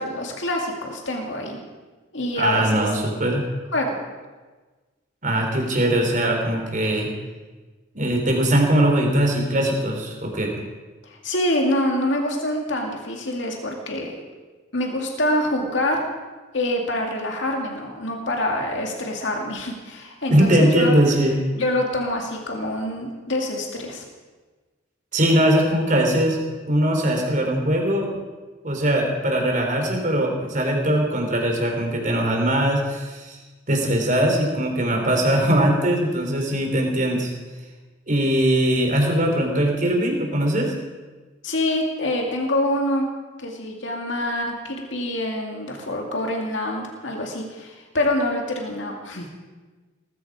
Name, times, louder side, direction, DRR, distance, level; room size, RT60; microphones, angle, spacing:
voice 1, 0.0-1.6 2.1-3.2 3.7-4.0 11.0-14.2 14.7-16.0 16.5-21.0 21.5-24.0 41.4-43.0 43.4-49.3, left 1 dB, 65° left, 1 dB, 2.4 m, -26 dB
voice 2, 2.3-3.4 5.2-7.1 7.9-10.5 20.3-21.4 25.1-28.1 28.6-33.4 33.7-37.3 38.1-40.7, right 1 dB, 40° right, 1 dB, 3.8 m, -21 dB
19.0 x 15.0 x 5.0 m, 1.3 s
head